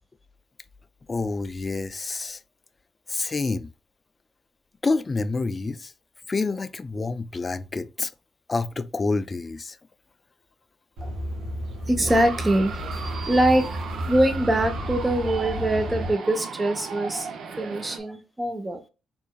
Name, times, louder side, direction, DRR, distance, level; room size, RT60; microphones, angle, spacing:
voice 1, 1.1-2.4 3.1-3.7 4.8-5.9 6.3-8.1 8.5-9.8, left 3 dB, 30° left, 0.3 m, -28 dB
sound 1, 11.0-16.1, equal, 75° right, 1.7 m, -32 dB
voice 2, 11.9-12.9 13.3-13.8 14.1-18.8, right 1 dB, 20° right, 0.9 m, -23 dB
sound 2, 12.1-18.0, right 5 dB, 60° right, 0.6 m, -36 dB
4.4 x 3.1 x 2.3 m
cardioid pair, 90°, 0 cm